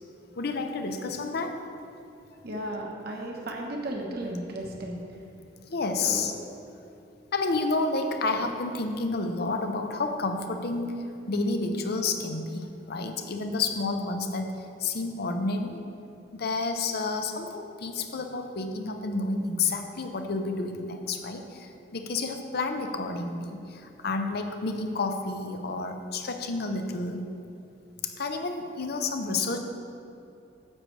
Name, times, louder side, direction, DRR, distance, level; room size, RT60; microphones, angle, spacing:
voice 1, 0.4-1.6 5.7-6.3 7.3-15.8 16.3-27.2 28.0-29.6, left 3 dB, 60° left, 6 dB, 0.7 m, -30 dB
voice 2, 2.4-5.0 6.0-6.2, right 1 dB, 60° right, 0 dB, 1.2 m, -34 dB
9.7 x 7.7 x 3.3 m, 2.7 s
head